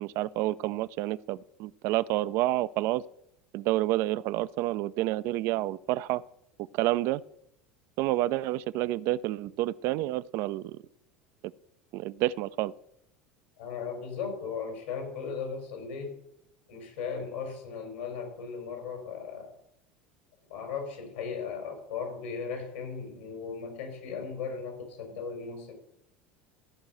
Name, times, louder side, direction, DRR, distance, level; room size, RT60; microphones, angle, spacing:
voice 1, 0.0-3.0 3.5-6.2 6.7-7.2 8.0-10.8 11.9-12.7, right 16 dB, 50° right, 17 dB, 0.5 m, -29 dB
voice 2, 13.6-16.2 16.7-19.5 20.5-25.7, left 5 dB, 70° left, 4 dB, 4.1 m, -37 dB
13.5 x 5.6 x 7.8 m, 0.77 s
figure-of-eight pair, 70°, 6 cm